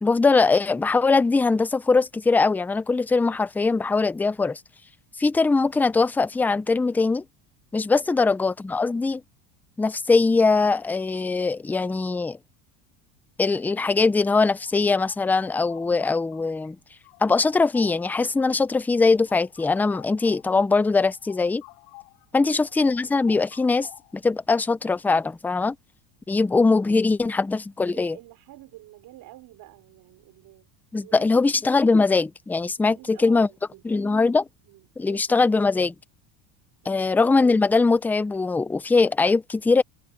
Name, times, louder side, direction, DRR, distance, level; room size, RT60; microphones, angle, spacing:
voice 1, 0.0-4.6 5.2-7.2 7.7-9.2 9.8-12.4 13.4-16.8 17.2-21.6 22.3-25.8 26.3-28.2 30.9-33.5 33.8-34.4 35.0-35.9 36.9-39.8, left 3 dB, 5° left, 0.4 m, -21 dB
sound 1, 14.5-16.7 17.0-22.3 22.6-24.3, left 28 dB, 90° left, 5.7 m, -50 dB
voice 2, 27.9-30.7 31.0-31.5 32.9-34.0 34.7-35.5, right 16 dB, 55° right, 3.1 m, -49 dB
cardioid pair, 140°, 43 cm